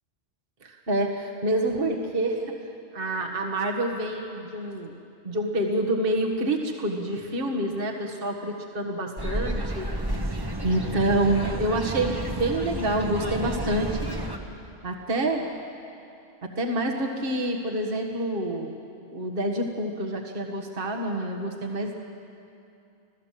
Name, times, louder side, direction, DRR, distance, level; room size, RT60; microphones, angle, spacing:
voice 1, 0.6-2.6 2.9-4.9 5.2-9.9 10.2-14.0 14.8-15.5 16.4-18.8 19.1-21.9, right 1 dB, 50° right, 1 dB, 1.8 m, -27 dB
sound 1, 9.2-14.4, right 1 dB, 20° right, 1.4 m, -31 dB
26.0 x 16.0 x 7.6 m, 2.6 s
omnidirectional pair, 1.2 m